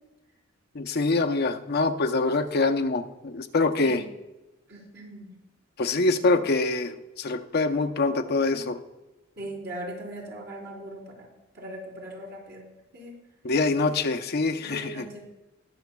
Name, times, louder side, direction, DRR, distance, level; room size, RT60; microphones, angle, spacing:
voice 1, 0.7-4.0 5.8-8.8 13.4-15.0, left 3 dB, 55° left, 6 dB, 0.7 m, -25 dB
voice 2, 4.7-5.4 6.3-6.4 9.4-11.3 11.5-12.7 12.9-13.2 14.6-15.2, right 1 dB, 55° right, -3 dB, 3.7 m, -39 dB
21.0 x 7.1 x 2.3 m, 1.0 s
head